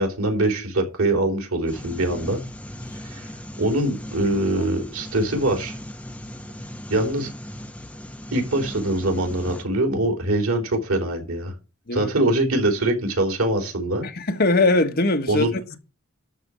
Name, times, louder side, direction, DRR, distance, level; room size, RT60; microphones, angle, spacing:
voice 1, 0.0-2.4 3.0-3.3 3.6-5.7 6.9-7.3 8.3-11.5 11.9-14.1 15.3-15.5, right 1 dB, 85° right, 3.5 m, -23 dB
sound 1, 1.7-9.6, left 1 dB, 5° left, 0.8 m, -38 dB
voice 2, 14.0-15.8, left 2 dB, 45° left, 1.5 m, -21 dB
13.0 x 4.5 x 8.2 m
head